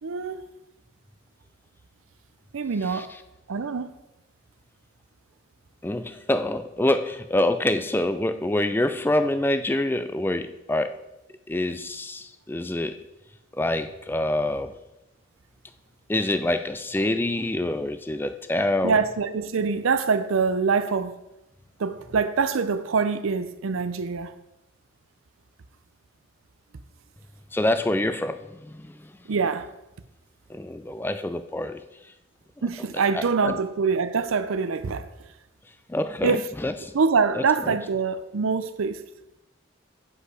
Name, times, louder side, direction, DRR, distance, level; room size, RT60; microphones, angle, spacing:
voice 1, 0.0-0.5 2.5-3.1 3.5-3.9 18.8-21.2 21.8-24.3 29.3-29.7 32.6-35.1 36.2-36.5 36.9-39.0, right 5 dB, 80° right, 0.5 m, -24 dB
voice 2, 5.8-11.0 11.5-13.0 13.5-14.7 16.1-19.0 27.5-29.1 30.5-31.8 33.1-33.6 35.9-36.9 37.3-37.8, left 1 dB, 10° left, 0.3 m, -26 dB
8.0 x 5.4 x 4.8 m
head